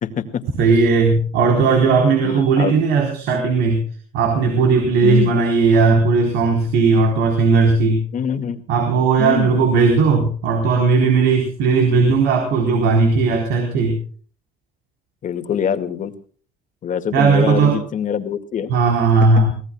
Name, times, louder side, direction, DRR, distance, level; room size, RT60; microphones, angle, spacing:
voice 1, 0.0-0.4 2.2-2.8 5.0-5.4 8.1-8.6 9.2-9.6 15.2-16.1 16.8-18.8, left 8 dB, 50° left, 8 dB, 2.1 m, -24 dB
voice 2, 0.6-3.8 4.1-8.0 8.7-14.0 17.1-17.8 18.7-19.5, right 4 dB, 85° right, 3 dB, 4.2 m, -16 dB
24.5 x 18.0 x 2.3 m, 0.43 s
cardioid pair, 110°, 17 cm